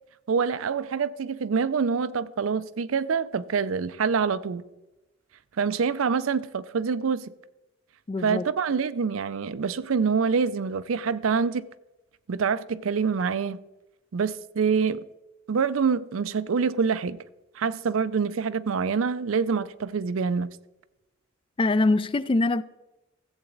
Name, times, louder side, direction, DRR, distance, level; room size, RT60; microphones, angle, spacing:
voice 1, 0.3-4.6 5.6-7.3 8.2-11.6 12.3-13.6 14.1-15.1 15.5-17.2 17.6-20.5, right 5 dB, 85° right, 0.5 m, -26 dB
voice 2, 8.1-8.4 21.6-22.6, left 2 dB, 25° left, 0.3 m, -23 dB
14.5 x 8.0 x 3.9 m
head